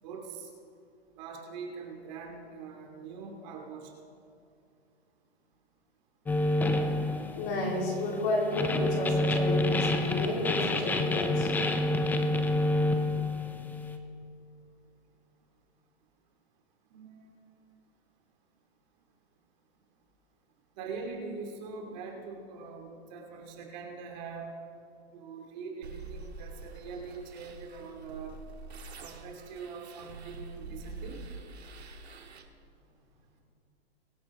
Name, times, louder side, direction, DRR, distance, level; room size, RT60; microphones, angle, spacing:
voice 1, 0.0-0.5 1.2-3.9 16.9-17.1 20.8-24.5 25.1-28.4 29.0-31.2, right 5 dB, 45° right, 1 dB, 2.7 m, -42 dB
sound 1, 6.3-14.0, left 2 dB, 5° left, 0.5 m, -28 dB
voice 2, 7.4-11.9, left 1 dB, 35° left, -3 dB, 3.9 m, -32 dB
sound 2, 25.8-32.4, right 3 dB, 85° right, 1.8 m, -45 dB
23.0 x 8.8 x 3.7 m, 2.5 s
hypercardioid pair, 135°, 32 cm